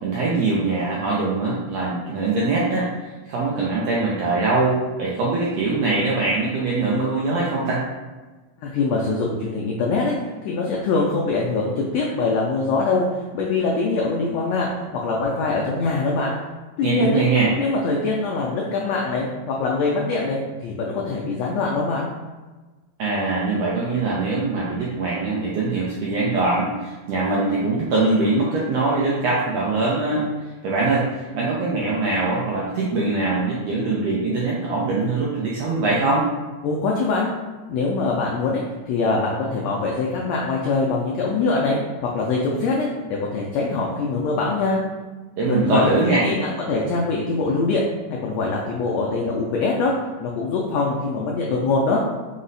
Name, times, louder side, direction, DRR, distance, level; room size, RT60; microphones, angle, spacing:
voice 1, 0.0-2.9 3.3-7.8 16.8-17.5 23.0-30.3 30.6-36.3 45.4-46.2, right 3 dB, 80° right, -5 dB, 1.5 m, -22 dB
voice 2, 8.6-13.0 13.3-16.4 16.8-17.2 17.6-22.1 36.6-37.3 37.7-44.8 45.4-45.9 46.2-47.8 48.1-49.9 50.2-52.0, left 3 dB, 85° left, -2 dB, 1.5 m, -23 dB
5.2 x 2.0 x 3.9 m, 1.3 s
omnidirectional pair, 3.5 m